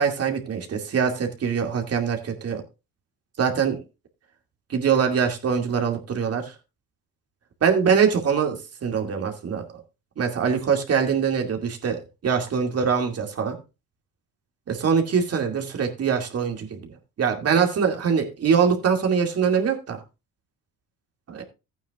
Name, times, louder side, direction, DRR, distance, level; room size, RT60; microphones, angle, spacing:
voice 1, 0.0-2.6 3.4-3.8 4.7-6.5 7.6-8.6 8.8-9.8 10.2-13.6 14.7-16.9 17.2-20.0 21.3-21.4, right 6 dB, 45° right, 3 dB, 2.5 m, -23 dB
15.0 x 9.1 x 2.5 m, 0.27 s
cardioid pair, 115°, 35 cm